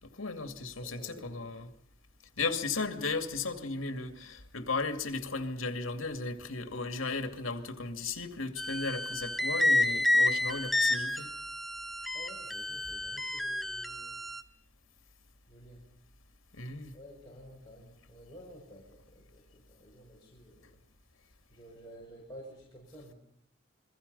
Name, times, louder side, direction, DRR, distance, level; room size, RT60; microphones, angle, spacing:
voice 1, 0.0-1.7 2.4-11.3 16.5-17.0, left 3 dB, 75° left, 2.5 m, -35 dB
voice 2, 0.8-1.5 12.1-14.2 15.5-15.8 16.9-20.8 21.1-23.1, equal, 20° left, 6.1 m, -52 dB
sound 1, 8.6-14.4, left 2 dB, ahead, 1.0 m, -30 dB
29.0 x 22.5 x 5.5 m
head